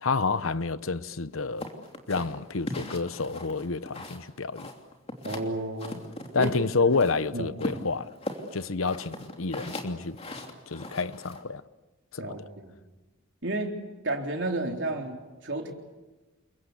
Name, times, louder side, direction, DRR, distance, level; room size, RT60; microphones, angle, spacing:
voice 1, 0.0-1.7 2.1-4.7 6.3-8.1 8.5-10.2 10.7-11.6 12.1-12.4, left 4 dB, 80° left, 0.9 m, -29 dB
sound 1, 1.6-4.3 4.6-5.5 5.8-7.2 7.6-11.4, left 1 dB, 30° left, 3.0 m, -38 dB
voice 2, 5.2-6.0 6.4-6.5 6.9-7.0 7.3-7.5 12.2-12.7 13.4-13.8 14.0-15.7, right 2 dB, 60° right, 3.8 m, -32 dB
29.0 x 23.0 x 8.3 m
head